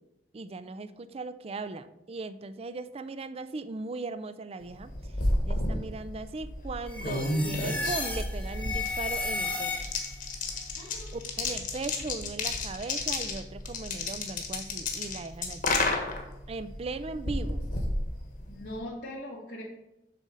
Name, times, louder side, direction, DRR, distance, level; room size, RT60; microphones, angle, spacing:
voice 1, 0.3-4.9 5.4-9.9 11.1-15.8 16.5-17.6, right 3 dB, 35° right, 12 dB, 0.4 m, -38 dB
sound 1, 4.7-18.8, left 2 dB, 50° left, 1.3 m, -32 dB
sound 2, 6.9-10.2, left 3 dB, 10° left, 1.1 m, -34 dB
voice 2, 10.8-11.2 18.4-19.6, left 1 dB, 90° left, -4 dB, 1.5 m, -41 dB
7.5 x 4.0 x 6.3 m, 0.91 s
head